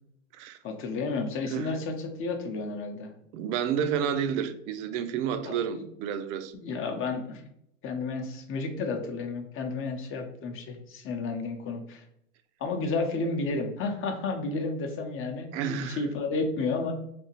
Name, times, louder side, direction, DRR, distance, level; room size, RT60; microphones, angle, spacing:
voice 1, 0.6-3.1 5.4-5.8 6.5-7.4 7.8-12.0 12.6-16.9, left 3 dB, 35° left, 0.7 m, -32 dB
voice 2, 1.4-1.7 3.3-6.5 15.5-16.0, right 8 dB, 70° right, 0.5 m, -30 dB
3.4 x 2.8 x 2.8 m
supercardioid pair, 110°, 37 cm